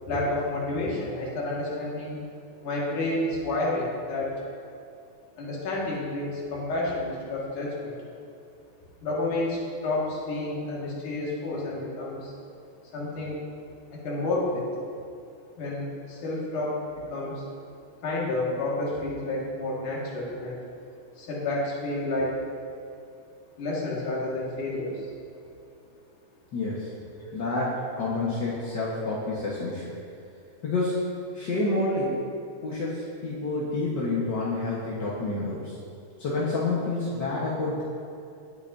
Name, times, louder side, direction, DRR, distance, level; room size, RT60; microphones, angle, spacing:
voice 1, 0.0-2.2 2.6-4.3 5.4-7.9 9.0-12.3 12.9-13.4 13.9-14.8 15.6-16.8 17.1-17.4 18.0-20.6 21.2-22.4 23.6-25.1 27.2-27.3, left 2 dB, 85° left, -5 dB, 3.5 m, -30 dB
voice 2, 26.5-26.9 27.3-29.9 30.6-32.2 32.6-35.8 36.2-37.8, left 2 dB, 50° left, -6 dB, 1.5 m, -28 dB
19.0 x 8.6 x 2.8 m, 2.6 s
omnidirectional pair, 3.5 m